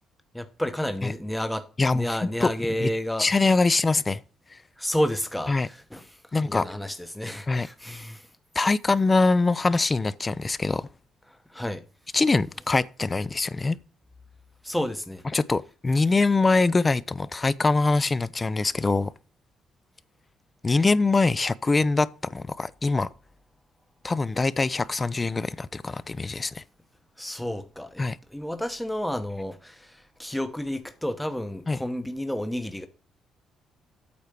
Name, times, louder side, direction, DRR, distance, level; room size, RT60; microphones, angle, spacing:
voice 1, 0.3-1.6 1.9-3.3 4.8-8.3 11.5-11.8 14.6-15.2 27.2-28.0 28.3-32.9, equal, 5° left, 0.9 m, -31 dB
voice 2, 1.8-2.9 3.2-4.2 4.5-4.6 5.5-5.7 6.3-6.7 7.5-7.7 8.6-10.9 12.1-13.8 15.3-19.1 20.6-23.1 24.0-26.6 28.0-28.2 31.7-31.8, left 3 dB, 25° left, 0.5 m, -23 dB
8.5 x 4.4 x 6.7 m
cardioid pair, 90°, 0 cm